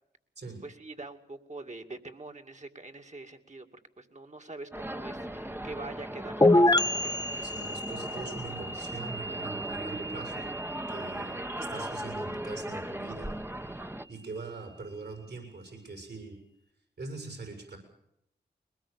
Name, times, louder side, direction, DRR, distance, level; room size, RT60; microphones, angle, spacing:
voice 1, 0.6-3.7 4.0-7.2, right 2 dB, 40° right, 5 dB, 2.5 m, -44 dB
city street cafe outside seating area, 4.7-14.1, right 1 dB, 10° right, 1.1 m, -38 dB
sound 1, 6.4-14.0, left 1 dB, 20° left, 1.4 m, -29 dB
voice 2, 7.4-10.5 10.9-13.4 14.1-16.4 17.0-17.8, right 3 dB, 65° right, 5 dB, 6.9 m, -42 dB
22.5 x 20.0 x 7.0 m, 0.79 s
cardioid pair, 45°, 19 cm